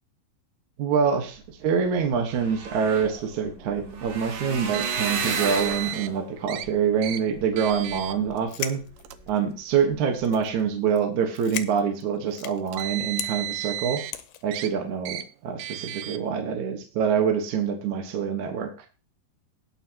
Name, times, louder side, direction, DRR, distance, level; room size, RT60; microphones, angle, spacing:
voice 1, 0.8-8.8 9.3-14.0 14.4-18.7, right 7 dB, 60° right, 4 dB, 2.2 m, -25 dB
sound 1, 1.6-1.7 1.9-8.3 8.9-9.3 9.7-9.9 10.2-10.3, right 4 dB, 40° right, 2.6 m, -34 dB
Car, 4.7-6.1 6.5-6.7 7.0-7.2 7.6-8.1 9.0-9.2 10.1-10.2 12.5-14.1 14.5-14.7 15.1-15.2 15.6-16.2, right 15 dB, 80° right, 2.1 m, -33 dB
sound 2, 8.3-9.6 10.2-10.6 10.9-11.0 11.3-12.7 13.2-13.3 14.1-14.4, left 12 dB, 75° left, 2.6 m, -35 dB
19.5 x 6.8 x 2.9 m, 0.34 s
omnidirectional pair, 4.8 m